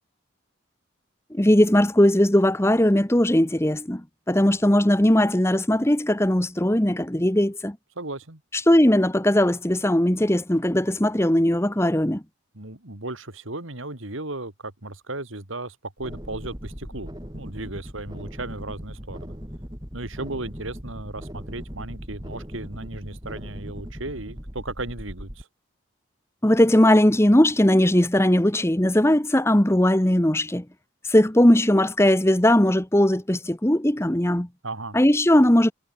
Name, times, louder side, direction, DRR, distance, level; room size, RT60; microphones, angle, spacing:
voice 1, 1.3-7.8 8.7-12.2 26.4-30.6 31.1-34.5 34.9-35.7, left 1 dB, 10° left, 1.1 m, -19 dB
voice 2, 8.0-8.4 12.5-19.3 19.9-25.5 34.6-35.0, right 2 dB, 75° right, 3.1 m, -35 dB
sound 1, 16.0-25.4, equal, 20° right, 6.0 m, -39 dB
head